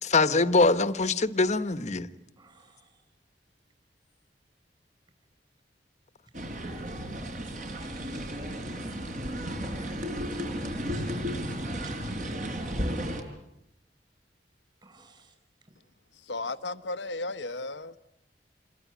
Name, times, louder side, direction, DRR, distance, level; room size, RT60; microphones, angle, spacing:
voice 1, 0.0-2.1, left 3 dB, 40° left, 1.2 m, -23 dB
voice 2, 2.4-3.0 7.7-8.4 10.3-11.6 14.8-15.3, right 4 dB, 25° right, 5.1 m, -58 dB
sound 1, 6.3-13.2, equal, 45° right, 4.7 m, -33 dB
voice 3, 16.1-18.0, left 2 dB, 80° left, 1.0 m, -35 dB
28.0 x 22.5 x 9.4 m
head